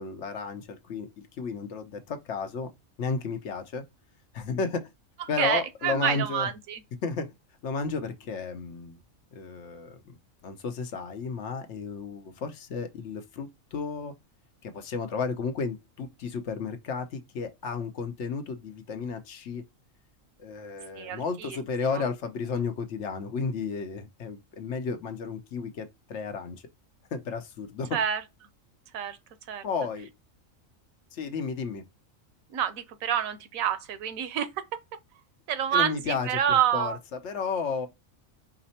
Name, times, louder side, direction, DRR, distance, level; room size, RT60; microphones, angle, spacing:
voice 1, 0.0-2.7 3.0-3.8 4.3-4.9 5.3-6.5 7.0-7.3 7.6-9.0 9.3-10.2 10.4-14.1 14.6-19.6 20.4-26.6 27.1-28.0 29.6-30.1 31.1-31.8 35.7-36.4 36.7-37.9, left 5 dB, 65° left, 0.9 m, -33 dB
voice 2, 5.2-6.8 21.0-21.6 21.9-22.0 27.9-28.2 28.9-29.2 29.5-29.6 32.5-34.6 35.5-37.0, right 9 dB, 85° right, 1.1 m, -28 dB
4.9 x 2.0 x 4.0 m
omnidirectional pair, 1.4 m